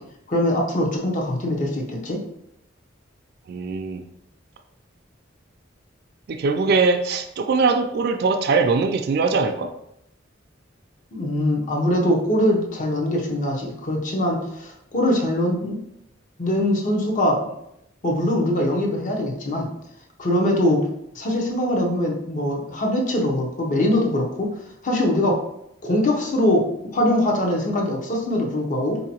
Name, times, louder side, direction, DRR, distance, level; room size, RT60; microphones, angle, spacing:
voice 1, 0.3-2.2 11.1-15.8 16.4-17.4 18.0-19.7 20.2-20.8 21.1-24.5 24.8-25.4 25.8-26.6 26.9-29.0, left 1 dB, 40° left, 0 dB, 0.7 m, -22 dB
voice 2, 3.5-4.0 6.3-9.7, right 4 dB, 55° right, 5 dB, 0.3 m, -21 dB
4.4 x 2.7 x 2.8 m, 0.78 s
head